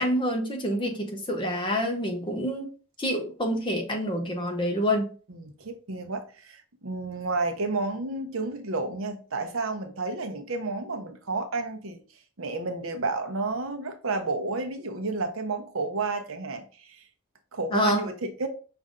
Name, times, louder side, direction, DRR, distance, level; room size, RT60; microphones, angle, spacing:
voice 1, 0.0-2.7 3.0-5.1 17.7-18.1, equal, 25° left, 0.9 m, -27 dB
voice 2, 5.3-12.0 12.4-17.0 17.5-18.5, right 3 dB, 80° right, 0.8 m, -31 dB
5.4 x 2.6 x 3.6 m
head